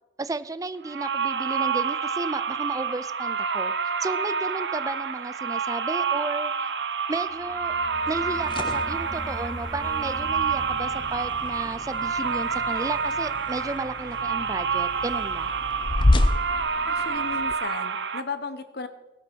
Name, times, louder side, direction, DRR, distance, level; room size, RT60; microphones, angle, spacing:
voice 1, 0.2-3.7 4.0-6.7 7.1-7.7 8.1-15.5, right 3 dB, 20° right, 15 dB, 0.4 m, -33 dB
sound 1, 0.8-18.2, right 5 dB, 75° right, 0.8 m, -28 dB
sound 2, 7.3-14.0, equal, ahead, 2.4 m, -42 dB
sound 3, 8.2-17.5, left 1 dB, 25° left, 0.7 m, -30 dB
voice 2, 16.9-18.9, left 4 dB, 60° left, 10 dB, 1.2 m, -35 dB
18.5 x 8.4 x 6.2 m, 1.0 s
head